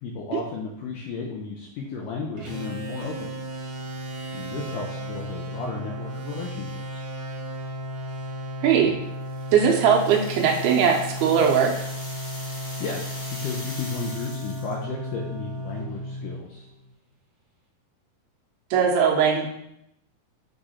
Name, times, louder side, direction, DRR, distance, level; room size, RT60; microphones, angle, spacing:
voice 1, 0.0-3.3 4.3-7.0 12.8-16.7, left 4 dB, 75° left, -1 dB, 2.0 m, -34 dB
sound 1, 2.4-16.9, equal, 50° right, 1.1 m, -34 dB
voice 2, 8.6-8.9 9.5-11.8 18.7-19.5, right 7 dB, 80° right, 1 dB, 2.6 m, -20 dB
sound 2, 9.3-14.8, left 1 dB, 50° left, 2.1 m, -41 dB
7.8 x 3.7 x 4.2 m, 0.79 s
omnidirectional pair, 4.7 m